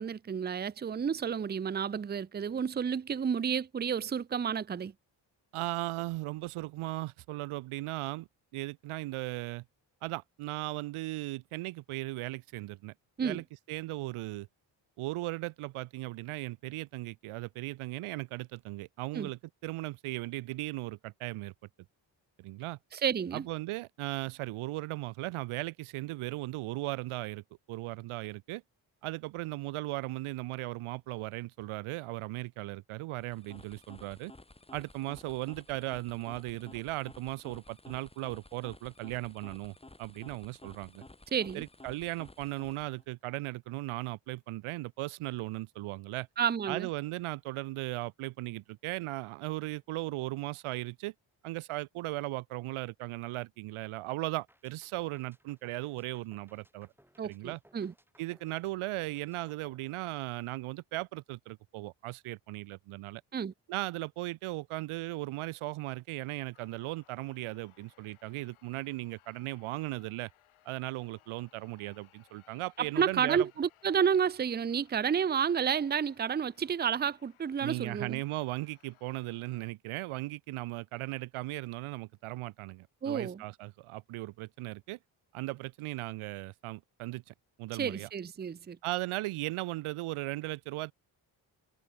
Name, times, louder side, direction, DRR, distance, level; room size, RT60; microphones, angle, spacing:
voice 1, 0.0-4.9 13.2-13.4 19.1-19.3 22.9-23.5 41.3-41.6 46.4-46.9 57.2-57.9 63.3-63.5 72.8-78.2 83.0-83.4 87.8-88.8, right 7 dB, 20° right, 0.5 m, -31 dB
voice 2, 5.5-8.3 8.5-9.6 10.0-12.9 13.2-14.5 15.0-21.5 22.4-22.8 23.3-28.6 29.0-34.3 34.7-41.1 41.5-46.3 46.7-51.1 51.4-56.9 57.2-57.6 58.2-63.2 63.7-70.3 70.7-73.5 77.6-85.0 85.3-88.1 88.8-90.9, right 19 dB, 85° right, 0.8 m, -37 dB
sound 1, 33.1-43.0, left 2 dB, 10° left, 1.7 m, -54 dB
sound 2, 54.5-60.7, equal, 5° right, 7.3 m, -65 dB
sound 3, 66.5-79.7, left 13 dB, 80° left, 3.8 m, -65 dB
supercardioid pair, 60°, 48 cm